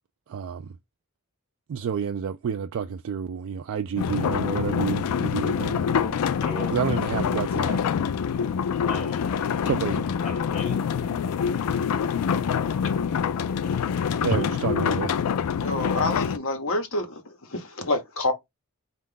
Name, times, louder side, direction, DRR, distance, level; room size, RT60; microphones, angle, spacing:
voice 1, 0.3-0.8 1.7-5.8 6.7-7.8 9.7-10.0 14.2-15.1, right 7 dB, 60° right, 0.3 m, -29 dB
sound 1, 4.0-16.4, left 7 dB, 85° left, 0.4 m, -26 dB
voice 2, 5.9-7.3 8.8-9.2 10.2-11.1, left 1 dB, 30° left, 1.6 m, -38 dB
voice 3, 15.6-18.3, left 2 dB, 60° left, 1.1 m, -28 dB
4.5 x 2.4 x 3.8 m
head